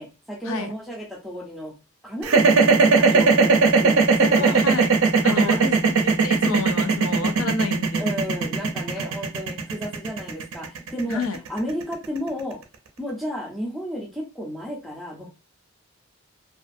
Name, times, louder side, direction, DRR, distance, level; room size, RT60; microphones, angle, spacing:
voice 1, 0.0-1.7 2.0-4.6 5.3-5.7 8.0-11.2 11.5-12.6 13.0-15.3, equal, ahead, 0.5 m, -32 dB
sound 1, 2.2-12.4, right 4 dB, 65° right, 0.5 m, -18 dB
voice 2, 4.2-4.9 5.2-8.1 9.0-9.1 11.1-11.4, left 4 dB, 70° left, 0.4 m, -29 dB
2.4 x 2.4 x 2.5 m
head